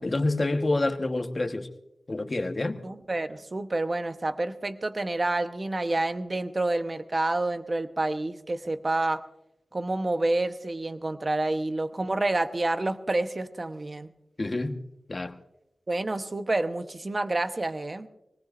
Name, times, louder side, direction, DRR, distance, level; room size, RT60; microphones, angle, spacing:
voice 1, 0.0-1.7 2.1-2.8 14.4-14.8 15.1-15.4, left 2 dB, 40° left, 1.2 m, -27 dB
voice 2, 2.8-9.2 9.7-14.1 15.9-18.1, right 2 dB, 40° right, 1.0 m, -28 dB
23.0 x 19.0 x 2.6 m
wide cardioid pair, 70°, 0 cm